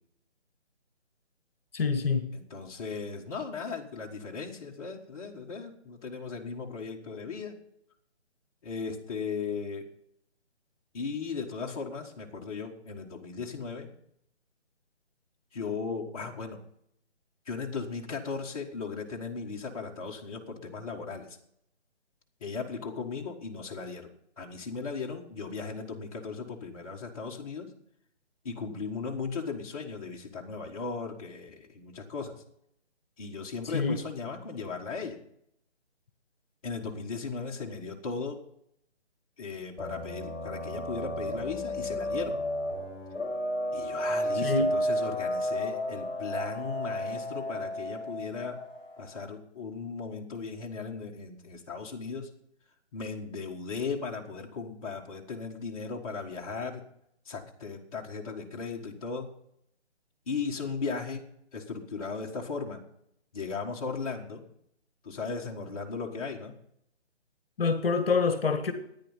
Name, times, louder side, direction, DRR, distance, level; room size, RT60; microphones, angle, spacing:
voice 1, 1.7-2.3 33.7-34.0 44.4-44.7 67.6-68.7, left 4 dB, 55° left, 1.6 m, -26 dB
voice 2, 2.3-7.5 8.6-9.9 10.9-13.9 15.5-16.6 17.4-21.4 22.4-24.1 24.4-27.7 28.4-32.4 33.2-35.2 36.6-38.4 39.4-42.4 43.7-48.6 49.0-52.4 52.9-56.8 57.2-59.4 60.3-62.8 63.3-64.4 65.0-66.6, left 4 dB, 30° left, 1.6 m, -37 dB
sound 1, 39.8-49.0, equal, 15° left, 4.5 m, -32 dB
13.5 x 10.0 x 5.6 m
figure-of-eight pair, 160°, 35 cm